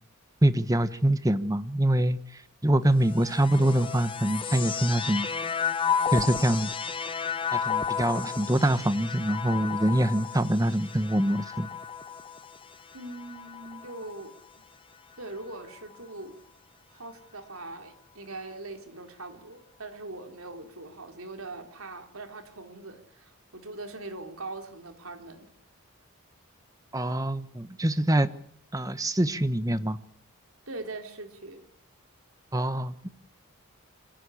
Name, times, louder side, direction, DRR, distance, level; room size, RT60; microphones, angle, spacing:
voice 1, 0.4-5.3 6.1-6.7 7.5-11.7 26.9-28.3 28.7-30.0 32.5-33.1, right 1 dB, 15° right, 12 dB, 1.1 m, -25 dB
sound 1, 3.0-14.5 15.2-16.0, left 7 dB, 25° left, 0.9 m, -33 dB
voice 2, 12.9-14.4 15.2-16.4 16.9-25.5 30.7-31.6, right 2 dB, 75° right, 5 dB, 3.6 m, -41 dB
25.0 x 16.5 x 8.5 m, 0.64 s
head